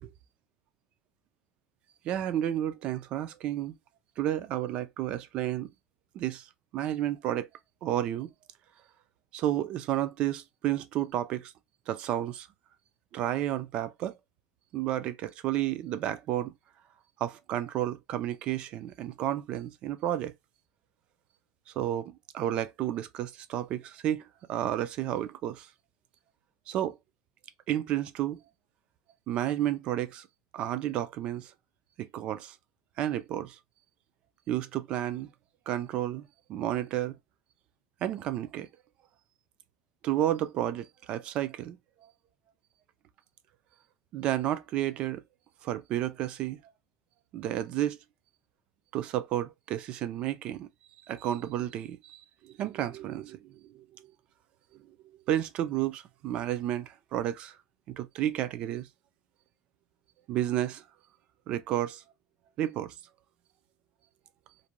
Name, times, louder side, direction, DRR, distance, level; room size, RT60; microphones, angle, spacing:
voice 1, 2.0-3.8 4.2-5.7 6.1-6.5 6.7-7.5 7.8-8.3 9.3-11.5 11.9-12.5 13.1-14.2 14.7-16.5 17.2-20.3 21.8-25.7 26.7-27.0 27.7-28.4 29.3-30.3 30.5-31.5 32.0-32.6 33.0-33.6 34.5-35.3 35.7-37.2 38.0-38.7 40.0-41.8 44.1-45.2 45.6-46.6 47.3-48.0 48.9-50.7 51.1-54.1 55.3-57.6 57.9-58.9 60.3-60.8 61.5-62.0 62.6-62.9, right 12 dB, 40° right, 0.4 m, -31 dB
2.5 x 2.1 x 3.0 m
cardioid pair, 160°, 3 cm